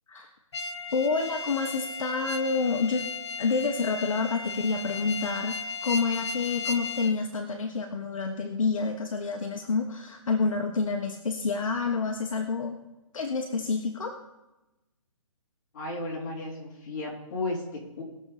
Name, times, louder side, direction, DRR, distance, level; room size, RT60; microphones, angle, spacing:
sound 1, 0.5-7.1, left 4 dB, 55° left, 0.9 m, -35 dB
voice 1, 0.9-3.0 3.4-12.8 13.1-14.1, left 4 dB, 70° left, 3 dB, 1.4 m, -28 dB
voice 2, 15.7-18.0, left 2 dB, 30° left, -4 dB, 4.0 m, -34 dB
20.0 x 7.1 x 4.2 m, 1.0 s
hypercardioid pair, 170°, 18 cm